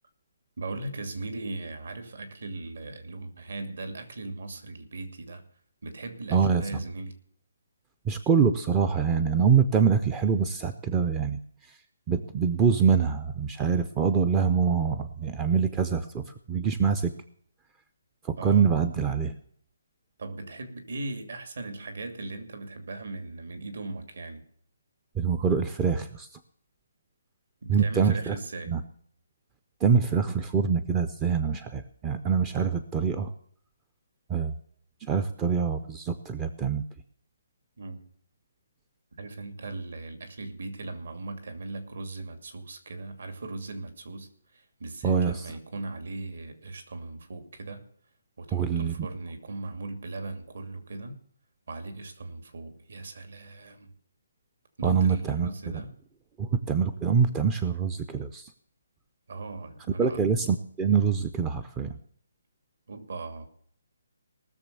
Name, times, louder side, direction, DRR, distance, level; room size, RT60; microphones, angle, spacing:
voice 1, 0.6-5.4 5.8-7.1 18.4-18.7 20.2-24.4 27.6-28.8 37.8-38.0 39.2-47.8 48.4-51.2 51.7-53.9 54.8-56.0 59.3-60.2 62.9-63.5, right 2 dB, 65° right, 7 dB, 2.5 m, -38 dB
voice 2, 6.3-6.6 8.1-11.4 12.1-17.1 18.2-19.3 25.2-26.3 27.7-28.3 28.7-28.8 29.8-33.3 34.3-34.5 35.0-36.8 45.0-45.5 48.5-48.9 54.8-55.5 56.4-58.5 60.0-61.9, right 6 dB, 10° right, 11 dB, 0.4 m, -25 dB
18.5 x 6.9 x 6.9 m, 0.63 s
hypercardioid pair, 175°, 0 cm